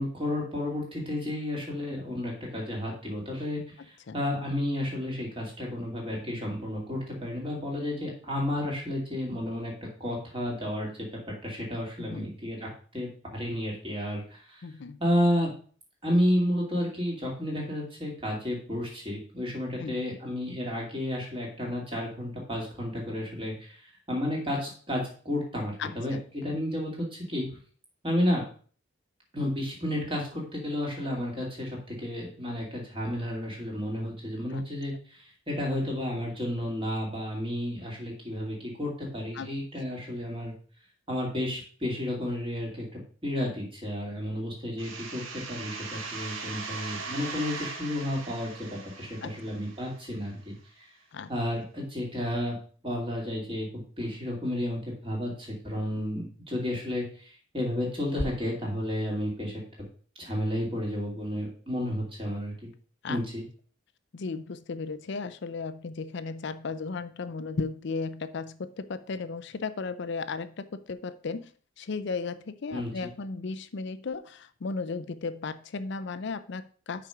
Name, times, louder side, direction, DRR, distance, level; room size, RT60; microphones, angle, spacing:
voice 1, 0.0-14.6 15.0-15.5 16.0-27.5 28.0-28.4 29.3-40.5 41.1-50.9 51.3-52.5 52.8-59.6 60.2-62.7 63.1-63.4 72.7-73.1, left 1 dB, 25° right, -2 dB, 2.6 m, -32 dB
voice 2, 3.8-4.2 12.0-12.3 14.6-15.0 19.8-20.0 25.8-26.5 34.5-34.6 39.3-39.5 49.2-49.4 51.1-51.3 63.0-63.2 64.1-71.5 71.8-77.1, left 4 dB, 55° left, 13 dB, 0.5 m, -35 dB
sound 1, 44.8-50.3, right 4 dB, 75° right, 1.3 m, -39 dB
5.9 x 5.1 x 5.7 m, 0.43 s
head